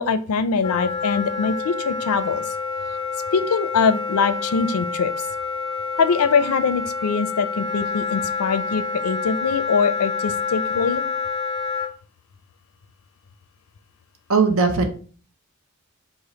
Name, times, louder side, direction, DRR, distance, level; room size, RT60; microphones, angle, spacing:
voice 1, 0.0-2.4 3.3-5.3 6.0-11.0, left 5 dB, 90° left, 12 dB, 0.4 m, -22 dB
Wind instrument woodwind instrument, 0.6-11.9, left 4 dB, 20° left, 0.4 m, -28 dB
voice 2, 14.3-14.9, right 4 dB, 70° right, 6 dB, 0.7 m, -18 dB
5.0 x 2.5 x 3.7 m, 0.41 s
head